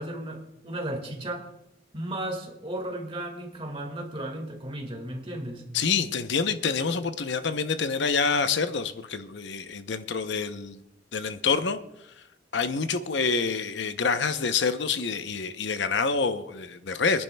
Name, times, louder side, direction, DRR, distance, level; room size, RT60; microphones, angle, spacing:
voice 1, 0.0-1.5 1.9-5.6, right 1 dB, 30° right, 3 dB, 1.9 m, -35 dB
voice 2, 5.7-10.8 11.1-11.8 12.2-12.3 12.5-17.2, left 5 dB, 70° left, 10 dB, 0.7 m, -27 dB
25.0 x 10.5 x 2.2 m, 0.84 s
head